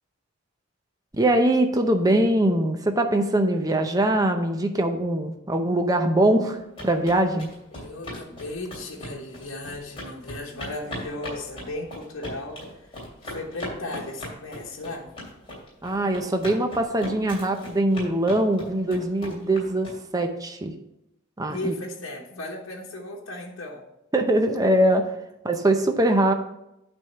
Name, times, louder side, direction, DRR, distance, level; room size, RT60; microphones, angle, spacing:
voice 1, 1.1-7.5 15.8-20.7 21.4-21.7 24.1-25.1 25.4-26.3, right 1 dB, 15° right, 5 dB, 0.6 m, -22 dB
sound 1, 6.5-20.2, left 1 dB, 25° left, 2.8 m, -38 dB
voice 2, 7.7-15.1 21.5-23.8, left 1 dB, 80° left, -1 dB, 1.1 m, -36 dB
8.6 x 3.6 x 6.4 m, 0.87 s
head